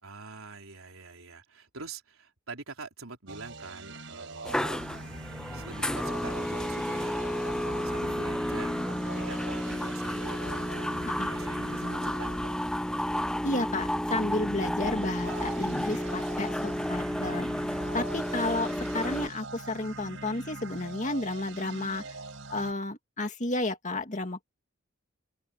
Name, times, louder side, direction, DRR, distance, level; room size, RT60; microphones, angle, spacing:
voice 1, 0.0-4.6 5.5-7.2 7.8-13.4 14.9-15.6, right 3 dB, 85° right, 4.1 m, -45 dB
sound 1, 3.3-13.3 14.7-22.7, right 3 dB, 65° right, 5.9 m, -43 dB
sound 2, 4.4-19.3, equal, 5° left, 0.4 m, -31 dB
voice 2, 13.4-17.5 17.9-22.0 22.5-24.5, left 2 dB, 35° left, 2.1 m, -32 dB
head